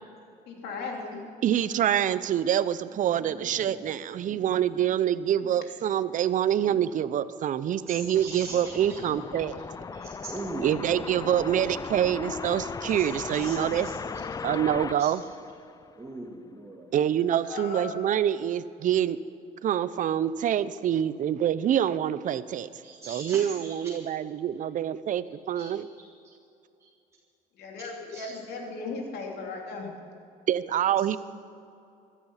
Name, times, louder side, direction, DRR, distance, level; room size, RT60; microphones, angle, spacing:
voice 1, 0.5-1.2 17.4-17.9 27.5-29.9, left 3 dB, 75° left, 0 dB, 3.0 m, -36 dB
voice 2, 1.4-9.6 10.6-13.9 14.4-15.2 16.9-19.2 19.6-22.7 23.1-25.9 30.5-31.2, right 10 dB, 50° right, 16 dB, 0.6 m, -26 dB
voice 3, 2.9-4.6 5.3-5.5 6.6-6.9 7.9-9.0 9.3-9.6 9.9-11.0 13.0-14.0 15.0-15.1 16.0-16.9 22.8-23.9 25.5-25.7 28.1-28.2, right 2 dB, 15° right, -1 dB, 1.9 m, -42 dB
sound 1, 7.7-16.1, left 5 dB, 20° left, 0.4 m, -38 dB
15.5 x 12.0 x 5.7 m, 2.6 s
cardioid pair, 110°, 17 cm